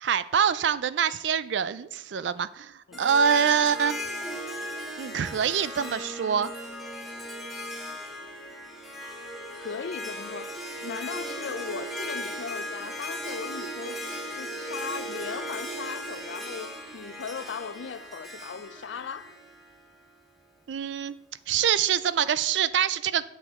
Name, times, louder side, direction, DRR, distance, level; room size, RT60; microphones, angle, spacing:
voice 1, 0.0-4.0 5.0-6.5 20.7-21.1 21.5-23.2, right 7 dB, 75° right, 0.4 m, -25 dB
Harp, 2.9-20.2, equal, ahead, 1.1 m, -37 dB
voice 2, 9.5-19.3, left 6 dB, 85° left, 0.4 m, -38 dB
7.9 x 6.6 x 3.6 m
head